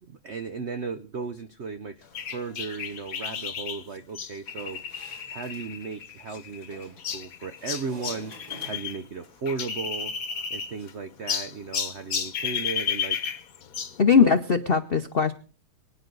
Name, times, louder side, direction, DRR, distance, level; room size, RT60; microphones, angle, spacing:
voice 1, 0.0-4.8 5.3-8.3 8.6-10.1 10.5-13.2 14.2-14.3, right 5 dB, 75° right, 9 dB, 0.6 m, -35 dB
sound 1, 2.1-9.0 9.2-10.9 11.3-14.0, left 7 dB, 50° left, 1.3 m, -33 dB
sound 2, 4.5-5.7 6.7-7.2 7.6-9.1, right 1 dB, 50° right, 6.2 m, -48 dB
voice 2, 14.0-15.3, left 6 dB, 70° left, 8 dB, 0.5 m, -20 dB
23.5 x 10.0 x 3.9 m, 0.39 s
omnidirectional pair, 2.2 m